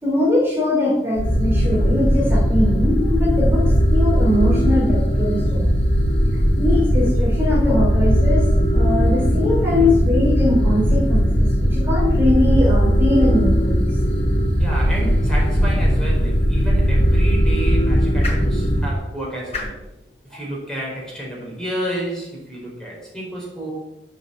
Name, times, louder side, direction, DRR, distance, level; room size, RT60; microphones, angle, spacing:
voice 1, 0.0-5.8 6.6-8.4 8.7-13.9, left 2 dB, 15° right, -5 dB, 4.5 m, -21 dB
sound 1, 1.2-18.9, equal, 80° left, 2.8 m, -18 dB
voice 2, 14.6-19.8 20.3-23.7, right 1 dB, 5° left, -4 dB, 4.5 m, -31 dB
sound 2, 16.4-22.6, left 2 dB, 35° left, 5.3 m, -38 dB
9.5 x 8.1 x 8.5 m, 0.89 s
head